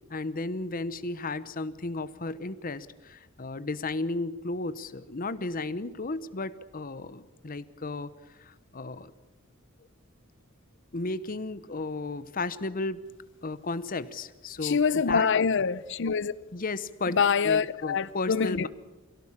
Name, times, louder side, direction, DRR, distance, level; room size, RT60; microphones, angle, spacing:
voice 1, 0.1-9.1 10.9-13.0 13.4-15.3 16.5-17.2 17.4-18.7, left 3 dB, 40° left, 0.9 m, -34 dB
voice 2, 14.6-16.3 17.1-18.7, left 5 dB, 60° left, 0.6 m, -25 dB
24.0 x 17.0 x 7.4 m
head